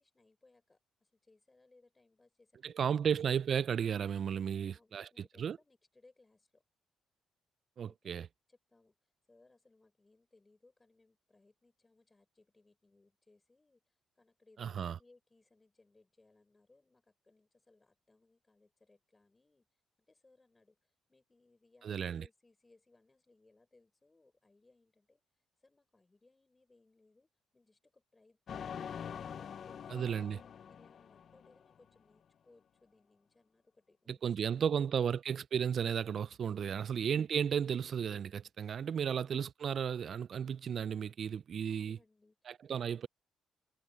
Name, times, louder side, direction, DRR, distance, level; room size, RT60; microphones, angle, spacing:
voice 1, 0.0-2.8 4.3-6.6 7.8-8.2 8.5-9.0 9.3-13.8 14.2-19.7 20.1-25.2 25.6-29.1 29.3-34.6 41.7-42.4, left 2 dB, 20° left, 5.7 m, -67 dB
voice 2, 2.6-5.6 7.8-8.3 14.6-15.0 21.8-22.2 29.9-30.4 34.1-42.0 42.5-43.1, right 8 dB, 55° right, 0.4 m, -34 dB
sound 1, 28.5-31.9, left 8 dB, 55° left, 0.6 m, -45 dB
cardioid pair, 90°, 0 cm